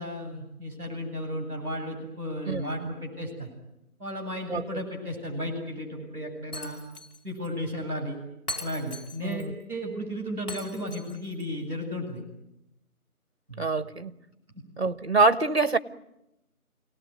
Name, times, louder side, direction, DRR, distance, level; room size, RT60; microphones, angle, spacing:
voice 1, 0.0-3.5 4.0-6.8 7.2-8.2 8.6-12.2 13.5-13.7, equal, 5° left, -17 dB, 6.9 m, -34 dB
voice 2, 2.5-2.9 4.5-4.8 9.2-9.5 13.6-14.1 14.8-15.8, right 3 dB, 45° right, 13 dB, 1.3 m, -25 dB
Shatter, 6.5-7.2 7.4-7.5 8.5-9.5 10.5-11.5, left 1 dB, 75° left, 4.9 m, -39 dB
28.0 x 18.5 x 9.5 m, 0.89 s
figure-of-eight pair, 180°, 45 cm